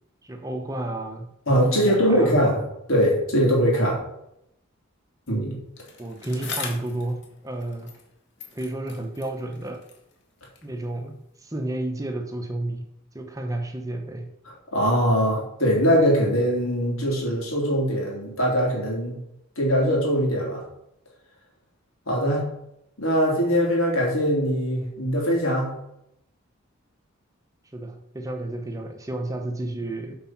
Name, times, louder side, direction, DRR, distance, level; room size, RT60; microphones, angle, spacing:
voice 1, 0.2-1.3 1.6-2.4 3.7-3.9 6.0-7.9 8.5-9.8 10.6-12.8 13.1-14.3 27.7-30.2, right 1 dB, 15° right, 4 dB, 0.8 m, -31 dB
voice 2, 1.5-2.6 2.9-4.0 5.3-5.6 14.7-19.2 19.6-20.6 22.1-22.5 23.0-25.7, equal, 85° left, -2 dB, 3.3 m, -22 dB
Bicycle, 5.8-8.1 8.4-10.8 11.5-11.6, left 5 dB, 55° left, 1.7 m, -40 dB
8.2 x 4.7 x 5.9 m, 0.80 s
head